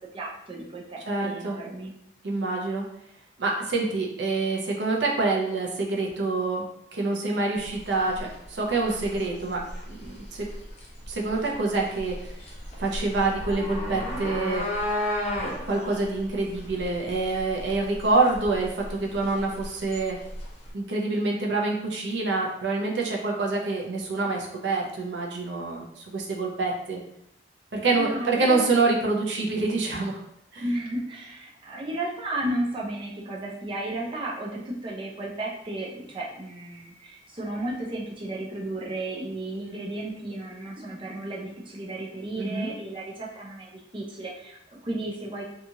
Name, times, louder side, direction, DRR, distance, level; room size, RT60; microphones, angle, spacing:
voice 1, 0.1-1.9 28.0-28.6 30.6-45.4, right 1 dB, 30° right, -4 dB, 0.5 m, -33 dB
voice 2, 1.1-1.6 2.2-2.8 3.4-6.6 6.9-9.6 9.9-10.5 11.1-12.2 12.8-14.6 15.7-20.2 20.7-27.0 27.7-30.2 30.5-30.6 42.4-42.7, right 3 dB, 80° right, -1 dB, 0.6 m, -26 dB
sound 1, 7.6-20.7, left 1 dB, 40° left, 0.6 m, -34 dB
2.8 x 2.4 x 2.7 m, 0.76 s
head